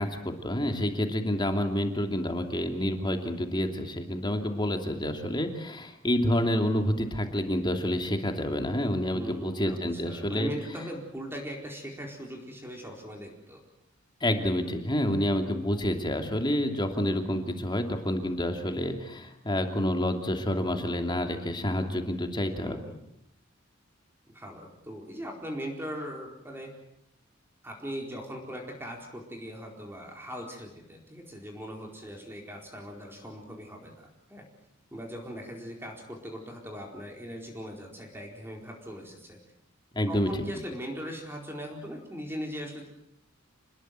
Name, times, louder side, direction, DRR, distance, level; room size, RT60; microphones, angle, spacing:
voice 1, 0.0-10.5 14.2-22.8 39.9-40.3, left 1 dB, 20° left, 5 dB, 2.8 m, -28 dB
voice 2, 9.1-13.6 22.6-22.9 24.3-26.7 27.6-34.5 34.9-39.4 40.1-42.8, equal, 10° right, 1 dB, 4.4 m, -40 dB
28.0 x 20.5 x 7.7 m, 0.79 s
head